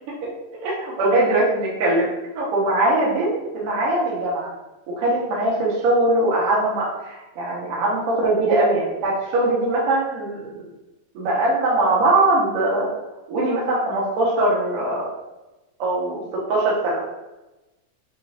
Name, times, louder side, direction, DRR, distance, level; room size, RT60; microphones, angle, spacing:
voice 1, 0.2-2.1 2.3-4.5 4.9-10.5 11.1-12.9 13.3-15.1 15.8-16.2 16.5-17.0, right 2 dB, 80° right, -5 dB, 1.2 m, -21 dB
6.4 x 2.6 x 2.4 m, 1.0 s
omnidirectional pair, 4.2 m